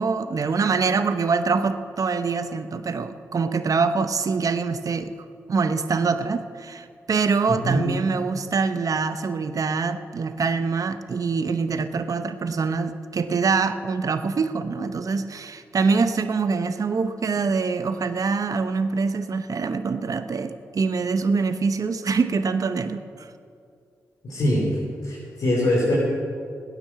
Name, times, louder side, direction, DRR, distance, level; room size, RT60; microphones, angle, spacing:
voice 1, 0.0-5.1 5.5-23.3, right 4 dB, 60° right, 10 dB, 0.9 m, -24 dB
voice 2, 24.2-24.6 25.0-25.9, left 1 dB, 75° left, -5 dB, 3.6 m, -22 dB
16.5 x 10.0 x 7.4 m, 2.4 s
supercardioid pair, 45°, 7 cm